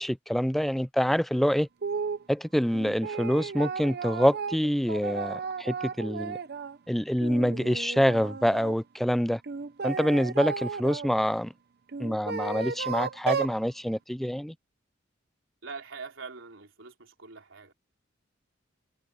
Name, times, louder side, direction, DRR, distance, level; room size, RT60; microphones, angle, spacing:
voice 1, 0.0-1.7 2.3-6.4 6.9-9.4 9.8-11.5 12.0-14.5, equal, ahead, 0.4 m, -26 dB
sound 1, 1.8-2.2 2.7-6.8 7.2-8.7 9.4-11.1 11.9-13.6, right 5 dB, 55° right, 0.8 m, -34 dB
voice 2, 15.6-17.7, right 4 dB, 80° right, 3.6 m, -43 dB
head